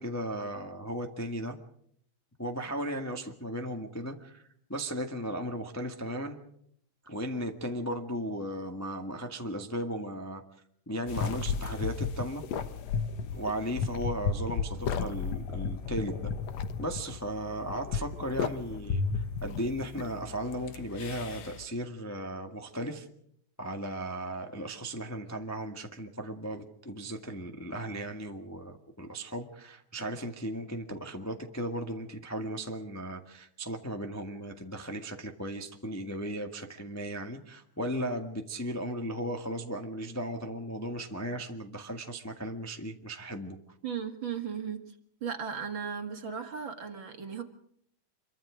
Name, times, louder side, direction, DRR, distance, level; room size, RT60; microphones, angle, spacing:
voice 1, 0.0-1.6 2.4-4.4 4.7-6.4 7.0-10.4 10.9-12.4 13.3-16.3 16.8-23.1 23.6-43.6, equal, 15° left, 4 dB, 0.5 m, -36 dB
sound 1, 11.1-21.7, left 5 dB, 60° left, 2.1 m, -34 dB
voice 2, 43.8-44.9 45.2-47.4, right 7 dB, 40° right, 6 dB, 2.3 m, -36 dB
27.0 x 23.5 x 5.1 m, 0.69 s
omnidirectional pair, 3.7 m